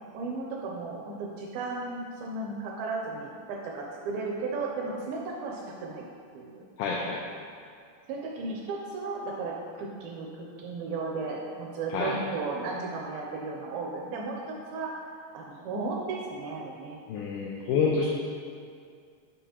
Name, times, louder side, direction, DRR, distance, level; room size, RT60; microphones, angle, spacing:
voice 1, 0.1-6.0 6.3-6.6 8.1-14.4 14.7-14.9 15.3-17.0, right 3 dB, 80° right, -1 dB, 2.2 m, -35 dB
voice 2, 6.8-7.2 11.9-12.2 17.1-18.1, left 5 dB, 90° left, -2 dB, 2.0 m, -28 dB
7.2 x 5.0 x 2.8 m, 2.2 s
omnidirectional pair, 4.6 m